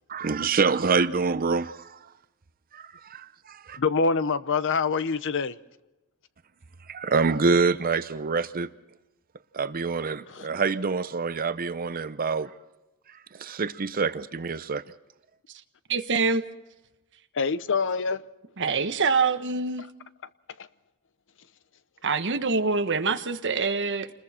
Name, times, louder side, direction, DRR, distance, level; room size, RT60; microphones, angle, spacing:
voice 1, 0.1-2.0 2.7-3.8 6.9-8.7 9.5-12.5 13.4-14.8, right 4 dB, 40° right, 0.7 m, -26 dB
voice 2, 3.8-5.5 10.3-10.5 17.3-18.2, left 4 dB, 60° left, 0.8 m, -25 dB
voice 3, 15.9-16.4 18.6-19.8 22.0-24.1, right 4 dB, 55° right, 1.3 m, -25 dB
28.5 x 21.0 x 4.4 m
head